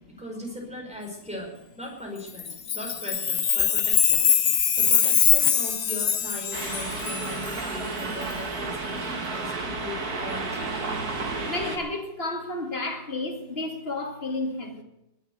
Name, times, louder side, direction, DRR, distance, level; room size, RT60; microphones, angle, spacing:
voice 1, 0.2-2.5 2.7-4.2 4.7-10.7, equal, 5° right, 4.9 m, -38 dB
Chime, 2.4-7.5, left 8 dB, 70° left, 0.4 m, -23 dB
sound 1, 6.5-11.8, right 3 dB, 60° right, 2.6 m, -32 dB
voice 2, 11.5-14.8, left 2 dB, 35° left, 2.5 m, -31 dB
20.5 x 7.1 x 8.0 m
omnidirectional pair, 1.8 m